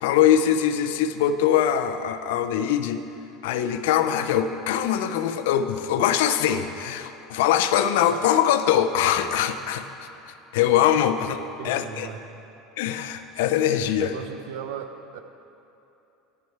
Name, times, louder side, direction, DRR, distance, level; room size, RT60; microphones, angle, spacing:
voice 1, 0.0-3.0 3.4-11.4 11.6-12.1 12.8-14.1, left 10 dB, 85° left, 10 dB, 0.4 m, -22 dB
voice 2, 11.6-12.2 14.0-15.2, right 8 dB, 75° right, 8 dB, 0.6 m, -37 dB
10.5 x 6.3 x 4.5 m, 2.8 s
cardioid pair, 170°, 0 cm